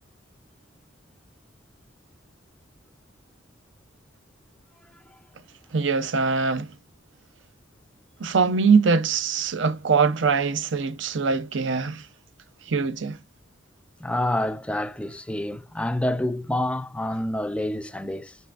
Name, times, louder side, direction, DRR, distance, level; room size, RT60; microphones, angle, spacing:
voice 1, 5.7-6.7 8.2-12.0 12.7-13.2, right 5 dB, 65° right, 0.6 m, -22 dB
voice 2, 14.0-18.4, left 1 dB, 5° left, 0.4 m, -27 dB
7.6 x 5.5 x 2.5 m
head